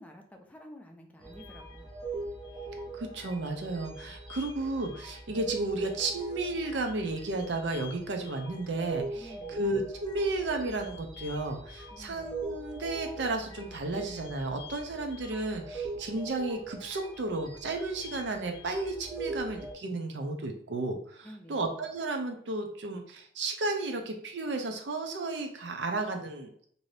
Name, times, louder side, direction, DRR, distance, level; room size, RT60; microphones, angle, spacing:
voice 1, 0.0-1.9 9.2-9.6 11.9-12.4 21.2-21.6, equal, 10° left, 2 dB, 0.4 m, -50 dB
sound 1, 1.2-19.7, right 3 dB, 25° right, 0.6 m, -42 dB
voice 2, 2.9-26.6, right 2 dB, 75° right, 4 dB, 0.5 m, -33 dB
2.7 x 2.6 x 3.2 m, 0.62 s
head